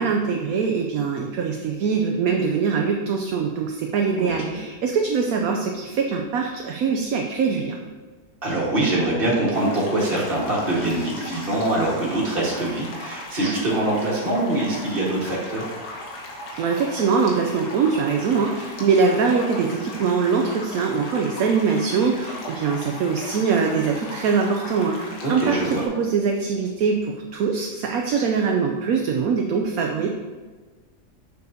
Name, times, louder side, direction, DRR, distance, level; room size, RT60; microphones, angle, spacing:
voice 1, 0.0-7.8 16.6-30.1, right 5 dB, 70° right, 2 dB, 1.0 m, -23 dB
voice 2, 4.2-4.6 8.4-15.6 25.2-25.8, right 1 dB, 35° right, -4 dB, 1.8 m, -24 dB
sound 1, 9.5-25.9, left 1 dB, 85° left, 1.7 m, -37 dB
6.7 x 6.4 x 2.7 m, 1.4 s
omnidirectional pair, 1.7 m